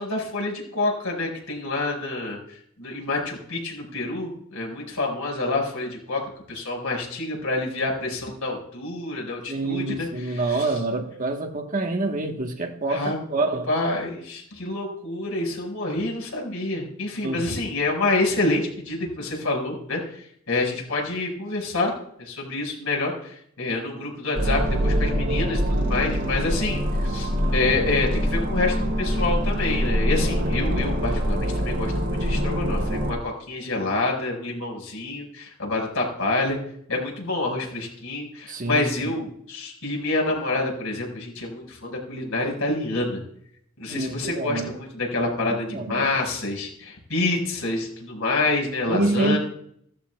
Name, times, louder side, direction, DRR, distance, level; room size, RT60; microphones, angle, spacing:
voice 1, 0.0-2.4 2.8-6.2 6.5-10.7 12.9-13.2 13.7-20.0 20.5-36.6 36.9-43.2 43.8-49.4, left 2 dB, 75° left, 5.7 m, -27 dB
voice 2, 9.5-13.7 17.2-17.4 26.8-26.9 38.5-39.1 43.9-44.7 45.4-46.0 48.9-49.4, right 2 dB, 40° right, 1.4 m, -27 dB
sound 1, 24.4-33.1, equal, 55° right, 3.2 m, -24 dB
17.0 x 14.0 x 2.4 m
head